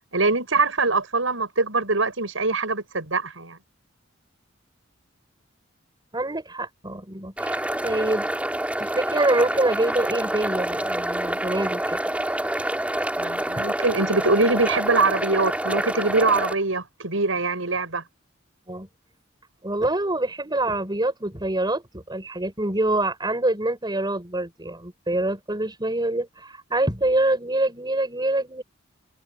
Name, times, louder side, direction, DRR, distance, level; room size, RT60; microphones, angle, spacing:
voice 1, 0.1-3.6 13.2-18.0, right 3 dB, 80° right, 6.4 m, -23 dB
voice 2, 6.1-8.3 8.8-12.0 18.7-18.9 19.6-28.6, right 2 dB, 20° right, 4.9 m, -25 dB
sound 1, 7.4-16.5, right 1 dB, 5° right, 6.5 m, -27 dB
head